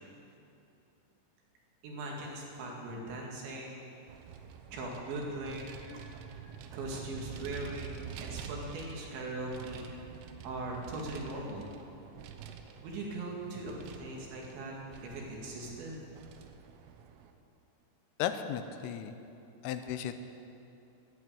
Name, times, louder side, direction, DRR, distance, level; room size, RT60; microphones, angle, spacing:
voice 1, 1.8-3.9 4.7-10.0 10.4-11.7 12.8-14.7 15.0-16.0, right 2 dB, 65° right, -2 dB, 4.2 m, -40 dB
Vehicle, 4.1-17.3, right 7 dB, 85° right, 3.4 m, -47 dB
voice 2, 18.2-19.2 19.6-20.2, left 10 dB, 85° left, 9 dB, 3.3 m, -35 dB
12.5 x 11.5 x 8.8 m, 2.8 s
omnidirectional pair, 5.8 m